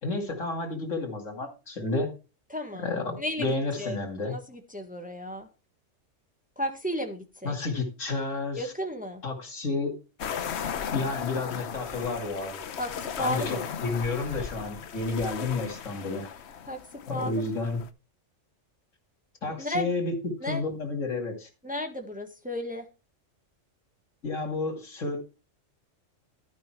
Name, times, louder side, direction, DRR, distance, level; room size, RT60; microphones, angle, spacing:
voice 1, 0.0-2.1 2.7-4.4 7.4-8.7 9.2-9.9 10.9-12.6 13.2-16.3 17.1-17.8 19.4-21.5 24.2-25.2, left 3 dB, 80° left, 4 dB, 2.8 m, -31 dB
voice 2, 2.5-2.9 3.2-3.5 3.8-4.0 4.3-5.5 6.6-7.6 8.6-9.2 12.8-13.7 16.7-16.8 17.1-17.4 19.6-19.9 20.4-20.6 21.6-22.8, left 1 dB, 5° right, 4 dB, 1.5 m, -33 dB
sound 1, 10.2-17.9, left 7 dB, 60° left, 1.1 m, -37 dB
13.0 x 5.4 x 4.6 m, 0.30 s
omnidirectional pair, 1.3 m